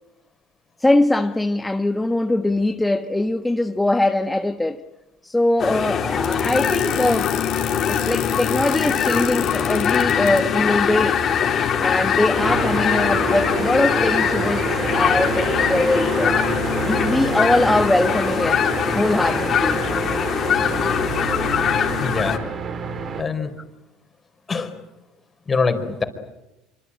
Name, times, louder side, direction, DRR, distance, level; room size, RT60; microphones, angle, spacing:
voice 1, 0.8-4.8 5.2-7.3 7.9-11.2 11.8-16.4 16.8-18.7 18.9-19.8, left 1 dB, 10° left, 1.3 m, -22 dB
sound 1, 5.6-22.4, left 7 dB, 45° left, 4.0 m, -22 dB
sound 2, 6.2-10.4, left 19 dB, 75° left, 3.7 m, -32 dB
sound 3, 12.4-23.2, right 6 dB, 40° right, 3.0 m, -28 dB
voice 2, 22.0-22.4 23.2-23.5 24.5-24.7 25.5-26.0, left 4 dB, 25° left, 4.6 m, -23 dB
25.5 x 25.0 x 8.8 m
supercardioid pair, 90°, 0 cm